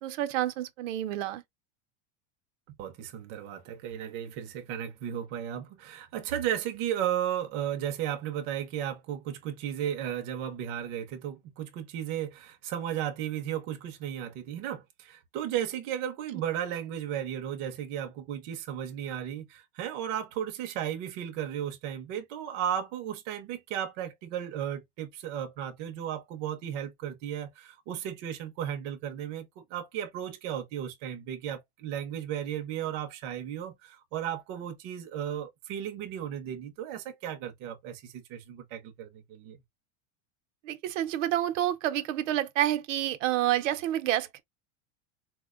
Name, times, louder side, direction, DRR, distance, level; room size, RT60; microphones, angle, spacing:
voice 1, 0.0-1.4 40.6-44.4, right 13 dB, 80° right, 0.6 m, -29 dB
voice 2, 2.8-39.6, right 10 dB, 30° right, 0.5 m, -35 dB
4.2 x 2.1 x 2.3 m
supercardioid pair, 175°, 37 cm